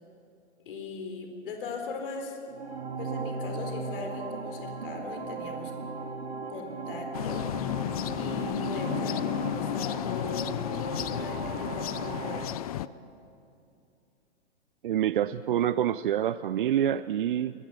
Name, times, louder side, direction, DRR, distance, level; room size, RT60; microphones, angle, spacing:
voice 1, 0.7-2.4 3.0-5.7 6.5-7.5 8.2-12.4, left 4 dB, 55° left, 4 dB, 4.0 m, -39 dB
sound 1, 2.4-12.4, right 4 dB, 70° right, 2.4 m, -37 dB
sound 2, 7.1-12.9, left 13 dB, 35° left, 0.5 m, -32 dB
voice 2, 14.8-17.5, right 10 dB, 50° right, 16 dB, 0.5 m, -26 dB
21.5 x 20.0 x 6.2 m, 2.5 s
figure-of-eight pair, 115°, 34 cm